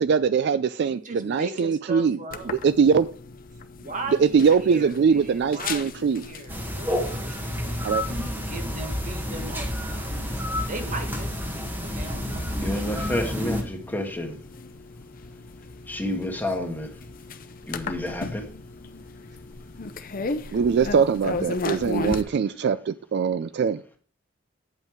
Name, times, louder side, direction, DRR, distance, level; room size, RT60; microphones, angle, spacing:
voice 1, 0.0-2.2 2.6-3.1 4.2-6.2 7.8-8.0 20.5-23.8, right 6 dB, 60° right, 0.3 m, -22 dB
voice 2, 0.9-2.5 3.8-10.4 10.7-12.8, right 2 dB, 40° right, 1.5 m, -39 dB
sound 1, 2.3-22.2, left 3 dB, 45° left, 0.7 m, -37 dB
sound 2, 6.5-13.6, left 1 dB, 10° right, 1.4 m, -30 dB
voice 3, 12.6-14.4 15.8-17.1 17.7-18.5 21.7-21.8 22.2-22.5, left 1 dB, 10° left, 1.5 m, -30 dB
9.1 x 5.6 x 4.5 m
head